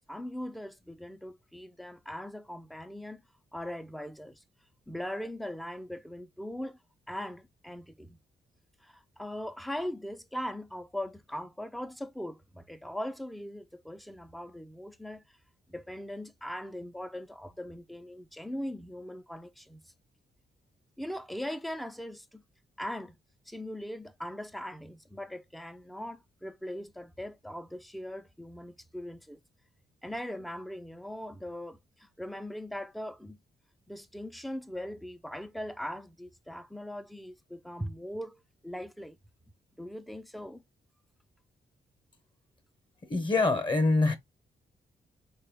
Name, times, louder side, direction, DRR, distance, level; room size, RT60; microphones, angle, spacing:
voice 1, 0.1-3.2 3.5-4.4 4.9-6.8 7.1-8.2 8.8-15.2 15.7-19.8 21.0-22.4 22.8-23.2 23.5-29.4 30.0-33.4 33.9-39.2 39.8-40.6, left 1 dB, ahead, 0.4 m, -40 dB
voice 2, 43.1-44.2, left 3 dB, 30° left, 0.7 m, -24 dB
3.8 x 2.2 x 3.3 m
cardioid pair, 125°, 17 cm